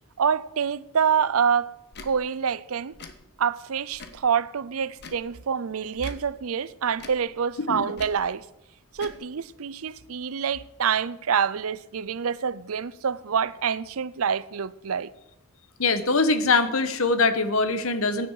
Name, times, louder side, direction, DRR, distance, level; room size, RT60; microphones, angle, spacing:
voice 1, 0.2-1.7 2.0-2.9 3.4-8.4 8.9-15.1, right 7 dB, 75° right, 0.6 m, -26 dB
Tick / Tick-tock, 1.9-2.1 2.9-3.2 3.9-4.2 5.0-5.3 6.0-6.2 6.9-7.2 7.9-8.2 8.9-9.2, left 4 dB, 50° left, 1.4 m, -43 dB
voice 2, 15.8-18.3, left 3 dB, 70° left, 1.2 m, -22 dB
16.0 x 10.5 x 4.9 m
head